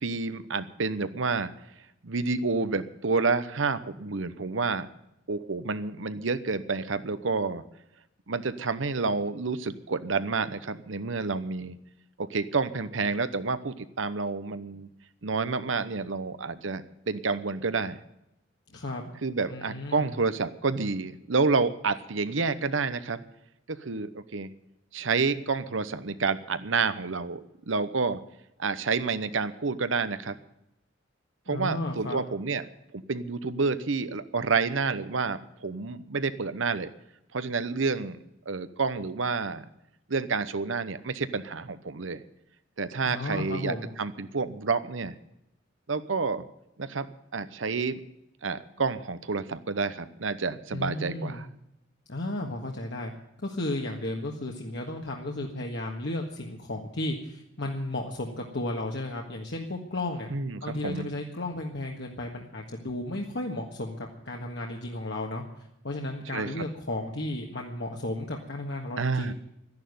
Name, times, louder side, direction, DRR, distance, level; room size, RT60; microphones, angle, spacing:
voice 1, 0.0-1.5 2.0-4.9 5.3-7.6 8.3-11.7 12.2-14.9 15.2-18.0 19.2-23.2 23.7-24.5 24.9-28.2 28.6-30.4 31.5-32.6 32.9-36.9 37.3-38.2 38.5-39.6 40.1-42.2 42.8-45.1 45.9-46.5 46.8-47.1 47.3-48.0 48.4-51.5 60.3-61.0 66.3-66.5 69.0-69.3, right 4 dB, 80° right, 12 dB, 0.9 m, -29 dB
voice 2, 18.7-19.1 19.5-20.2 31.5-32.2 43.0-43.9 50.7-51.5 52.1-53.1 53.4-60.3 60.6-65.4 65.8-69.3, left 1 dB, 60° left, 0 dB, 1.7 m, -34 dB
12.5 x 10.5 x 9.5 m, 0.84 s
head